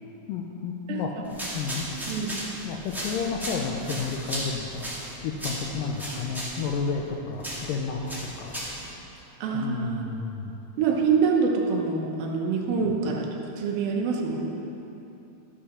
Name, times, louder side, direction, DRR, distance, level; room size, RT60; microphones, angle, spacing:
voice 1, 0.3-1.2 1.5-1.9 2.6-4.9 5.2-8.6 9.5-10.5 12.8-13.0, left 5 dB, 80° left, 0 dB, 2.0 m, -31 dB
voice 2, 0.9-1.2 2.1-2.4 9.4-10.1 10.8-13.3 13.6-14.5, right 5 dB, 75° right, 0 dB, 2.6 m, -25 dB
sound 1, 1.2-8.9, right 1 dB, ahead, 0.6 m, -36 dB
14.0 x 6.7 x 5.8 m, 2.9 s
omnidirectional pair, 4.6 m